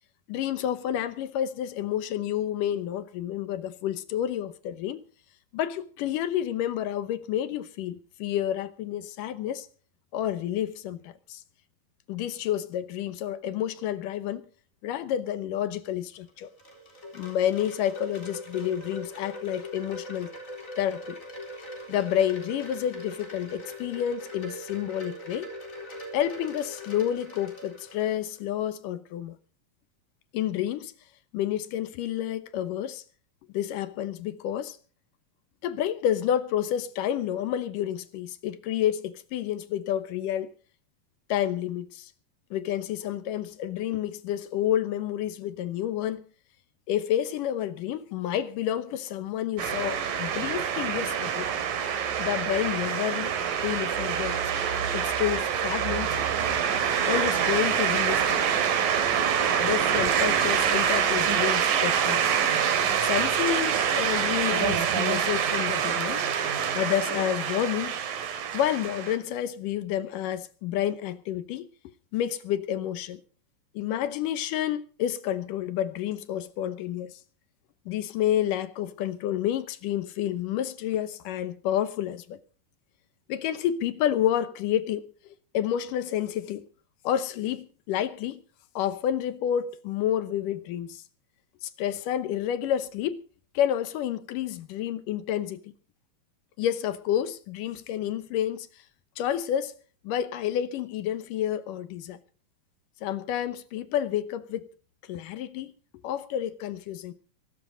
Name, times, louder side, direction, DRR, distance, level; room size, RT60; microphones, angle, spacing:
voice 1, 0.3-5.0 5.5-9.7 10.1-11.4 12.1-14.5 14.8-16.5 17.1-20.3 20.8-21.2 21.9-25.5 26.1-29.4 30.3-30.9 31.3-33.0 33.5-34.8 35.6-40.5 41.3-42.1 42.5-46.3 46.9-51.5 52.2-53.4 53.6-54.4 54.9-56.2 57.0-58.4 59.6-62.4 63.0-66.2 66.7-67.9 68.5-71.7 72.1-73.2 73.7-77.2 77.9-82.4 83.3-86.7 87.0-88.4 88.8-91.0 91.6-93.2 93.5-95.7 96.6-98.7 99.2-99.8 100.0-102.2 103.0-104.7 105.1-105.7 106.0-107.1, left 11 dB, 75° left, 2.5 m, -29 dB
Wind chime, 16.1-28.4, left 1 dB, 20° left, 4.1 m, -41 dB
sound 1, 49.6-69.2, right 8 dB, 75° right, 3.6 m, -26 dB
22.5 x 13.0 x 3.9 m
omnidirectional pair, 4.0 m